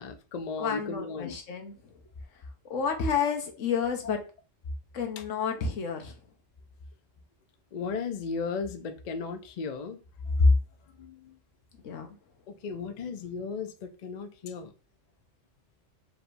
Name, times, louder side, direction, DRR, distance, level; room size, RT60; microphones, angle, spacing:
voice 1, 0.0-1.4 5.2-5.3 7.7-10.0 10.4-10.5 11.0-11.4 12.5-14.7, left 3 dB, 55° left, 0.4 m, -31 dB
voice 2, 0.6-1.8 2.7-4.2 4.9-6.1 11.8-12.2, left 6 dB, 75° left, 1.2 m, -30 dB
4.8 x 3.3 x 2.6 m
omnidirectional pair, 1.3 m